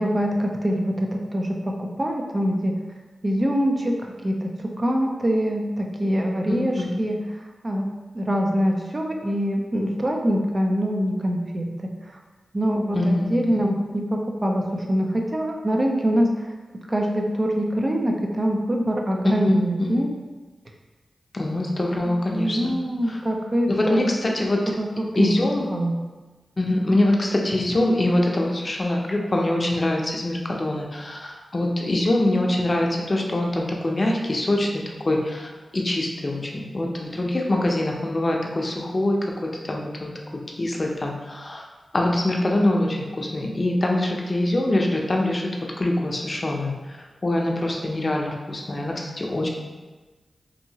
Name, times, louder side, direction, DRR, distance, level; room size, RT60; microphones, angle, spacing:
voice 1, 0.0-2.7 3.2-7.2 7.6-7.9 8.1-12.2 12.5-16.5 16.9-20.1 22.0-24.1 24.7-25.3 25.7-26.0, equal, 35° right, 1 dB, 0.5 m, -24 dB
voice 2, 6.5-7.0 12.9-13.6 19.2-20.0 21.3-22.7 23.1-23.2 23.7-24.7 25.2-25.6 26.6-40.1 40.6-41.7 41.9-45.5 45.8-49.5, left 1 dB, 40° left, 0 dB, 0.5 m, -24 dB
2.7 x 2.7 x 2.7 m, 1.2 s
cardioid pair, 45°, 0 cm